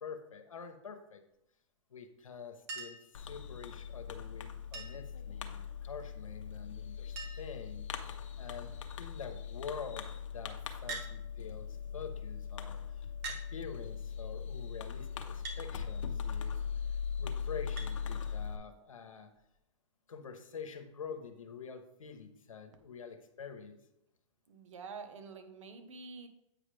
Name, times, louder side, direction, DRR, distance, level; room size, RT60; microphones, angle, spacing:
voice 1, 0.0-1.2 1.9-7.9 8.4-16.6 17.2-19.3 20.1-23.8, left 6 dB, 90° left, 6 dB, 1.0 m, -47 dB
Chink clink, 2.7-3.1 4.7-5.1 6.5-6.6 6.8-6.9 7.2-7.6 8.4-8.7 10.9-11.1 12.2-12.3 13.2-13.5 15.4-15.6 17.8-17.9 19.4-19.5, right 4 dB, 55° right, 1.6 m, -43 dB
Fireworks, 3.1-18.6, left 7 dB, 70° left, 0.8 m, -40 dB
voice 2, 24.5-26.3, right 4 dB, 75° right, 7 dB, 1.1 m, -47 dB
8.3 x 5.0 x 3.3 m, 0.83 s
hypercardioid pair, 130°, 17 cm